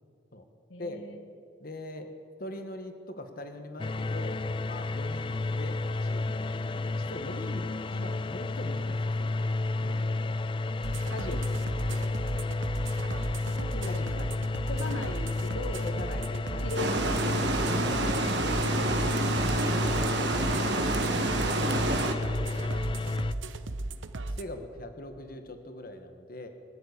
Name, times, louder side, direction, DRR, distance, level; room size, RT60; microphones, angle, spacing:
voice 1, 0.7-1.2 11.3-11.4 13.5-14.0 14.6-15.9 16.6-17.7, left 3 dB, 80° left, 6 dB, 1.1 m, -39 dB
voice 2, 1.6-2.1 2.4-9.5 9.8-10.1 11.1-12.2 13.8-14.3 15.8-20.5 21.5-21.9 22.2-22.9 24.3-26.5, left 1 dB, 50° left, 7 dB, 1.3 m, -42 dB
sound 1, 3.8-23.3, left 2 dB, 25° left, 0.4 m, -32 dB
sound 2, 10.8-24.4, right 2 dB, 90° right, 0.8 m, -36 dB
Water, 16.8-22.1, right 2 dB, 65° right, 1.3 m, -28 dB
22.5 x 7.5 x 8.4 m, 2.2 s
head